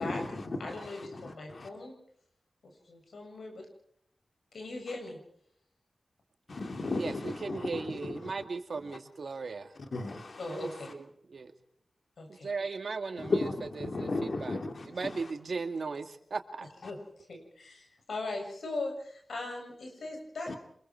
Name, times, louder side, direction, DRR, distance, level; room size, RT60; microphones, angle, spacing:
voice 1, 0.0-1.7 4.9-5.0 6.5-8.3 8.8-9.0 9.7-10.9 13.2-15.3 16.8-16.9 20.5-20.6, left 2 dB, 65° left, 5 dB, 2.5 m, -36 dB
voice 2, 0.6-2.0 2.9-3.7 4.5-5.2 10.4-10.9 12.2-12.5 16.8-17.0 17.3-20.6, left 2 dB, 90° left, 3 dB, 7.2 m, -39 dB
voice 3, 7.0-9.7 10.5-11.5 12.3-13.3 13.8-14.6 14.9-16.7, right 4 dB, 75° right, 7 dB, 2.2 m, -37 dB
27.0 x 22.0 x 4.6 m, 0.67 s
cardioid pair, 55°, 0 cm